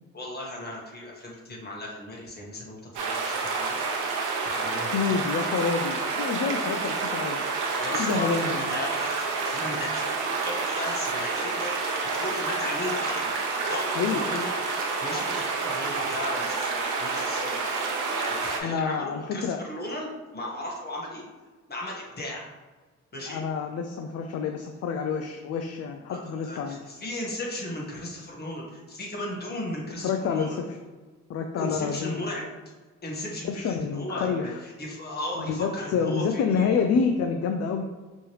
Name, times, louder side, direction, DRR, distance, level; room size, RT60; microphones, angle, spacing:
voice 1, 0.1-3.8 4.4-5.4 7.8-13.3 13.6-14.5 15.0-17.8 18.1-21.2 21.7-22.4 23.1-23.4 26.1-30.6 31.6-32.4 33.0-36.8, left 1 dB, 30° left, -2 dB, 1.5 m, -36 dB
sound 1, 2.9-18.6, right 4 dB, 85° right, 0.9 m, -29 dB
voice 2, 4.9-7.5 7.9-8.6 13.8-14.2 18.6-19.6 23.3-26.8 30.0-30.8 31.3-32.2 33.4-34.6 35.4-37.8, left 5 dB, 55° left, 5 dB, 0.5 m, -28 dB
5.2 x 3.1 x 3.1 m, 1.3 s
cardioid pair, 90°, 30 cm